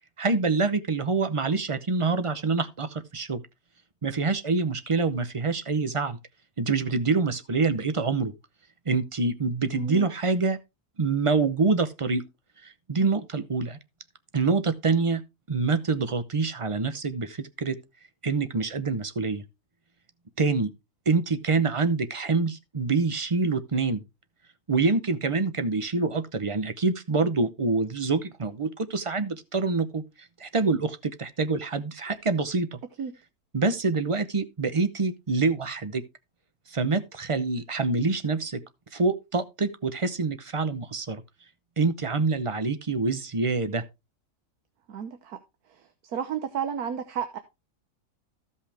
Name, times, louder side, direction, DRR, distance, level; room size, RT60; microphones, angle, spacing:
voice 1, 0.2-3.4 4.0-6.2 6.6-8.3 8.9-10.6 11.0-12.2 12.6-13.8 14.3-15.2 15.5-17.8 18.2-19.4 20.4-20.7 21.1-24.0 24.7-32.8 33.5-36.0 36.7-38.6 38.9-41.2 41.8-43.8, right 4 dB, 35° right, 0.5 m, -26 dB
voice 2, 9.7-10.1 33.0-33.1 44.9-45.4 45.7-47.4, right 8 dB, 75° right, 1.5 m, -32 dB
15.0 x 5.6 x 3.4 m
omnidirectional pair, 1.6 m